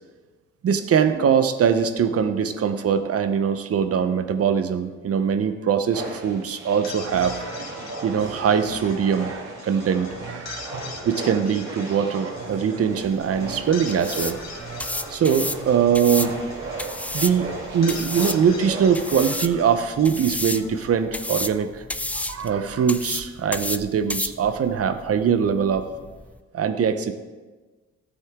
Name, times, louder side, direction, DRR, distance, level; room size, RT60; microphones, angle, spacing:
voice 1, 0.6-7.6 8.0-10.7 11.0-14.5 15.1-16.3 17.1-21.8 22.1-25.9 26.5-27.1, right 7 dB, 50° right, 10 dB, 0.9 m, -22 dB
sound 1, 5.9-19.4, right 3 dB, 75° right, 2.8 m, -36 dB
sound 2, 6.7-21.9, left 4 dB, 60° left, 2.1 m, -43 dB
sound 3, 12.9-26.4, left 1 dB, 5° left, 0.3 m, -33 dB
13.5 x 8.4 x 3.7 m, 1.3 s
cardioid pair, 90°, 30 cm